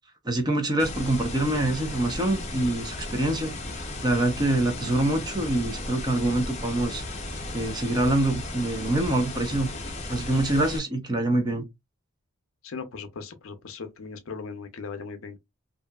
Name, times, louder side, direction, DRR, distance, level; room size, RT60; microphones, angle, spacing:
voice 1, 0.2-3.5 4.0-7.0 7.5-9.7 10.1-11.6, right 1 dB, 20° right, 0.5 m, -25 dB
sound 1, 0.8-10.8, left 2 dB, 30° left, 0.6 m, -35 dB
voice 2, 12.6-15.4, left 5 dB, 65° left, 0.6 m, -38 dB
2.7 x 2.4 x 2.2 m
head